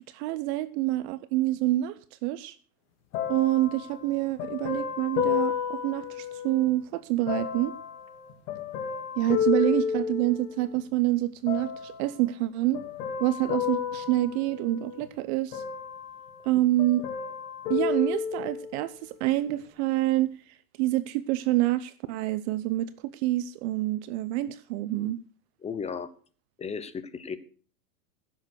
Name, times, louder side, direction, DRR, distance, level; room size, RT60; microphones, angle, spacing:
voice 1, 0.1-1.9 2.2-2.5 3.3-7.7 9.2-12.8 13.2-15.6 16.4-17.0 17.7-20.3 20.8-25.2, right 16 dB, 45° right, 0.8 m, -27 dB
sound 1, 3.1-6.7 7.3-10.8 11.5-12.1 12.7-15.1 15.5-16.5 16.8-18.8 19.5-19.6, left 7 dB, 65° left, 2.8 m, -32 dB
voice 2, 25.6-26.1 26.6-27.4, left 6 dB, 15° left, 0.9 m, -34 dB
15.5 x 7.7 x 6.1 m
supercardioid pair, 135°, 48 cm